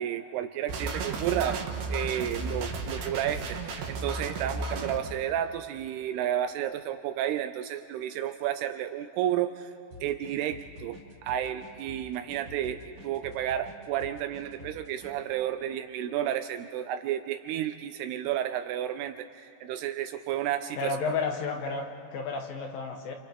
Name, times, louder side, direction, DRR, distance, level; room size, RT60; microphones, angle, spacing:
voice 1, 0.0-1.6 1.9-9.7 10.0-21.0, right 11 dB, 80° right, 7 dB, 2.4 m, -32 dB
sound 1, 0.7-5.0, right 3 dB, 60° right, 2.7 m, -34 dB
sound 2, 9.9-15.1, left 2 dB, 45° right, 3.6 m, -48 dB
voice 2, 20.8-23.1, left 4 dB, 70° left, 3 dB, 2.3 m, -32 dB
29.0 x 28.5 x 3.5 m, 2.9 s
omnidirectional pair, 5.0 m